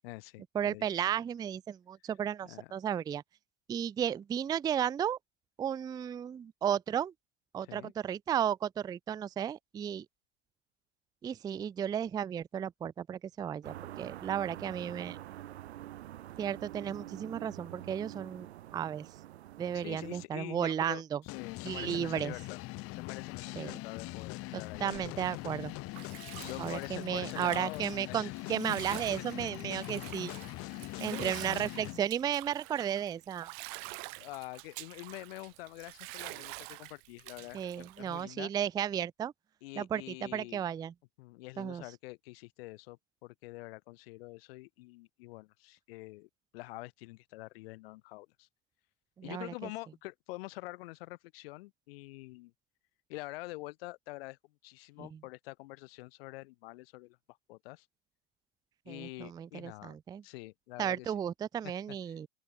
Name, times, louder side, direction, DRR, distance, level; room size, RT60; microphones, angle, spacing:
voice 1, 0.0-0.9 2.4-2.7 7.6-7.9 19.7-22.6 22.9-25.2 26.4-28.3 28.7-29.2 31.1-31.3 34.2-38.5 39.6-40.6 41.2-48.5 49.2-52.5 53.1-57.9 58.8-60.0 60.2-61.1 61.6-62.2, left 21 dB, 60° left, 1.4 m, -46 dB
voice 2, 0.5-3.2 3.7-5.2 5.6-7.1 7.5-10.1 11.2-15.2 16.4-18.5 18.7-19.1 19.6-21.2 21.6-22.3 23.6-23.8 24.5-25.7 26.6-30.3 31.0-33.5 37.5-39.3 39.8-40.9 41.6-41.8 49.2-49.5 55.0-55.2 58.9-60.2 60.8-62.3, right 9 dB, 10° right, 0.4 m, -34 dB
sound 1, 13.6-20.3, right 13 dB, 70° right, 2.7 m, -46 dB
sound 2, 21.3-32.0, left 20 dB, 40° left, 1.3 m, -42 dB
Bathtub (filling or washing), 24.7-38.2, right 40 dB or more, 50° right, 0.9 m, -47 dB
open air
hypercardioid pair, 90°, 34 cm